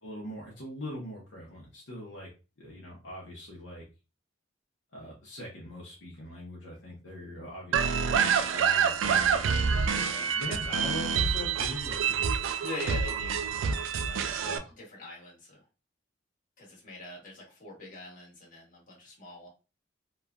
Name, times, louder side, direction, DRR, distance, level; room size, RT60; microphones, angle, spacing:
voice 1, 0.0-2.3 2.6-3.8 4.9-8.3 8.5-9.6 10.3-12.3 14.4-14.7, equal, 65° left, -3 dB, 0.8 m, -42 dB
sound 1, 7.7-14.6, right 6 dB, 75° right, 0.3 m, -27 dB
voice 2, 9.9-10.3 12.6-13.4 13.7-14.4 14.8-15.6 16.6-19.5, left 2 dB, 40° left, -3 dB, 1.2 m, -43 dB
3.0 x 2.2 x 2.4 m, 0.31 s
head